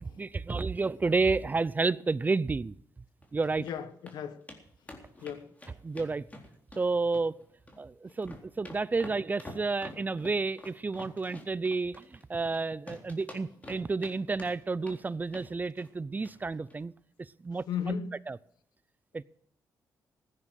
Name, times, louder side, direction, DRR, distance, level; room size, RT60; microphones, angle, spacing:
voice 1, 0.0-2.8 3.3-3.7 5.8-6.3 6.8-7.4 7.8-16.9 17.2-17.9 18.3-18.4 19.1-19.2, right 3 dB, 25° right, 0.5 m, -31 dB
sound 1, 3.2-3.7 4.1-4.2 4.5-4.6 4.9-6.8 7.1-7.8 8.1-12.6 12.9-14.1 14.4-15.0 15.3-15.5 15.8-16.0 16.3-16.4 16.7-16.8, left 1 dB, 20° left, 3.8 m, -47 dB
voice 2, 3.6-4.4 5.2-5.5 17.7-18.1, left 7 dB, 85° left, 1.5 m, -35 dB
16.0 x 9.9 x 6.4 m
cardioid pair, 85°, 7 cm